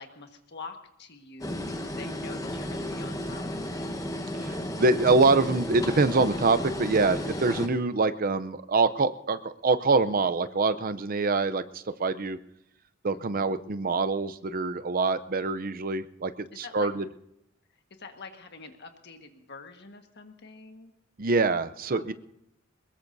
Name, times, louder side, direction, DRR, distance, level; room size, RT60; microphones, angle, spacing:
voice 1, 0.0-3.9 13.1-13.7 16.5-16.9 17.7-20.9 21.9-22.1, left 4 dB, 55° left, 5 dB, 1.5 m, -46 dB
sound 1, 1.4-7.7, left 1 dB, 15° left, 1.1 m, -33 dB
voice 2, 4.4-12.4 13.0-16.3 16.6-17.0 21.2-22.1, right 3 dB, 45° right, 11 dB, 0.6 m, -25 dB
22.0 x 20.5 x 2.7 m, 0.79 s
head